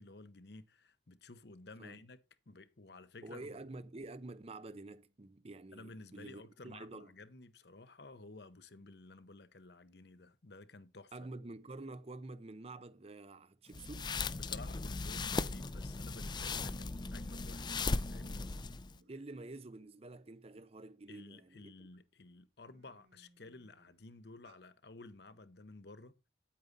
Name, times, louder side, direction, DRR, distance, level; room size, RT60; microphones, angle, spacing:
voice 1, 0.0-2.2 2.5-3.5 5.7-11.1 14.3-17.7 18.0-18.5 21.1-26.2, left 2 dB, 60° left, 0.9 m, -53 dB
voice 2, 3.2-7.1 11.1-14.1 19.1-21.7, right 2 dB, 35° right, 0.6 m, -48 dB
sound 1, 13.7-19.0, left 3 dB, 25° left, 0.5 m, -38 dB
sound 2, 18.9-19.3 19.8-21.3 21.9-22.1 22.4-24.6, right 2 dB, 65° right, 3.1 m, -68 dB
9.5 x 8.6 x 4.0 m
head